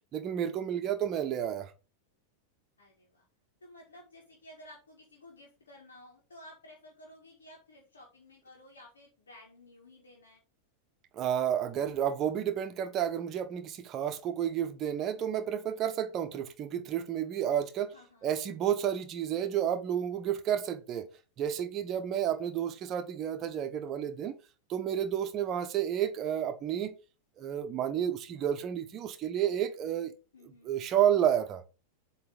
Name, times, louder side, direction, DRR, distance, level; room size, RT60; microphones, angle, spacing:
voice 1, 0.1-1.7 11.1-17.9 18.2-21.1 21.4-24.4 24.7-27.0 27.4-30.1 30.6-31.6, right 10 dB, 30° right, 1.0 m, -31 dB
voice 2, 2.8-3.3 3.6-10.4 17.9-18.3 22.0-22.6 25.3-25.7 30.3-30.7, left 1 dB, 70° left, 1.8 m, -54 dB
7.9 x 3.3 x 5.0 m
figure-of-eight pair, 90°, 0 cm